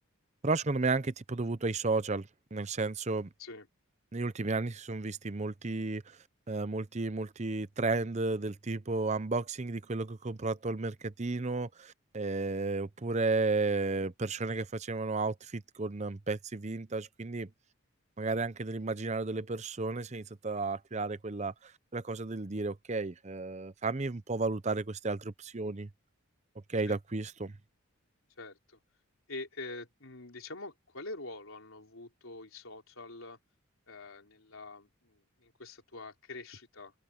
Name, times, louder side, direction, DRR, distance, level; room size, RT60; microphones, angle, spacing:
voice 1, 0.4-3.3 4.1-6.2 6.5-17.5 18.2-25.9 26.7-27.6, right 3 dB, 30° right, 0.7 m, -33 dB
voice 2, 28.4-28.8 29.3-33.4 33.9-36.9, left 2 dB, 75° left, 3.9 m, -45 dB
head